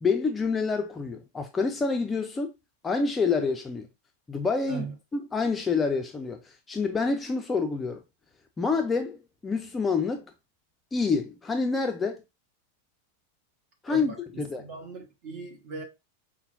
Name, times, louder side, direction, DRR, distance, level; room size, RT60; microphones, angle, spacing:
voice 1, 0.0-2.5 2.8-3.9 4.3-4.9 5.1-8.0 8.6-10.2 10.9-12.2 13.8-14.7, left 4 dB, 15° left, 0.4 m, -27 dB
voice 2, 13.9-15.8, right 5 dB, 40° right, 1.5 m, -39 dB
5.3 x 2.2 x 2.6 m
figure-of-eight pair, 90°, 0 cm